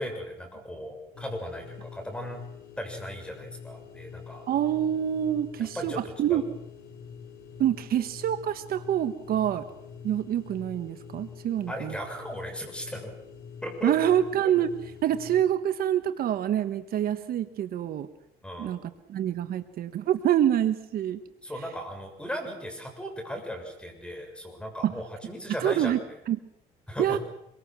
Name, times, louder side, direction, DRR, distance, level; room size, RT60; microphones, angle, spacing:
voice 1, 0.0-2.4 2.8-4.5 5.7-6.4 11.7-13.1 13.6-13.9 14.4-14.5 18.4-18.8 21.4-25.9 26.9-27.2, equal, 5° left, 4 dB, 7.0 m, -37 dB
sound 1, 1.1-15.4, left 6 dB, 65° left, 5.2 m, -45 dB
voice 2, 4.5-6.4 7.6-9.7 10.0-11.9 13.8-14.7 15.0-18.1 18.6-18.8 19.1-21.2 24.8-24.9 25.6-26.0 26.3-26.4 27.0-27.2, right 10 dB, 60° right, 11 dB, 1.3 m, -26 dB
25.0 x 23.5 x 6.3 m, 0.80 s
cardioid pair, 110°, 17 cm